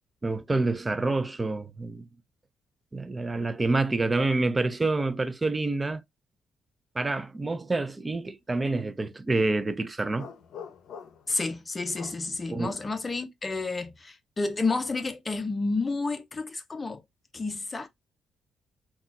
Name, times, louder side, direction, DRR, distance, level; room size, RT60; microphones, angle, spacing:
voice 1, 0.2-2.1 2.9-6.0 7.0-10.3 12.5-12.8, right 2 dB, 20° right, 0.4 m, -27 dB
sound 1, 10.1-11.4 11.9-12.3, left 7 dB, 70° left, 0.6 m, -44 dB
voice 2, 11.3-17.0 17.3-17.9, left 3 dB, 25° left, 0.7 m, -30 dB
3.7 x 2.3 x 2.6 m
cardioid pair, 90°, 0 cm